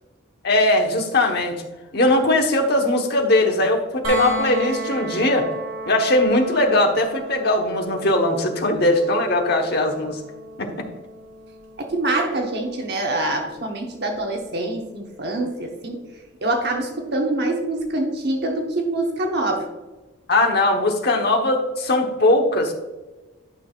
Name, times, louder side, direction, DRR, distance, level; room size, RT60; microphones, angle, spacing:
voice 1, 0.4-1.5 1.9-5.5 5.8-10.2 10.6-10.9 20.3-22.7, left 1 dB, 50° left, 3 dB, 1.1 m, -20 dB
sound 1, 4.0-15.9 17.8-17.9, right 2 dB, 75° right, 2.3 m, -35 dB
voice 2, 11.8-16.0 16.4-19.7, right 2 dB, 55° right, 2 dB, 0.9 m, -25 dB
11.0 x 5.8 x 2.4 m, 1.2 s
head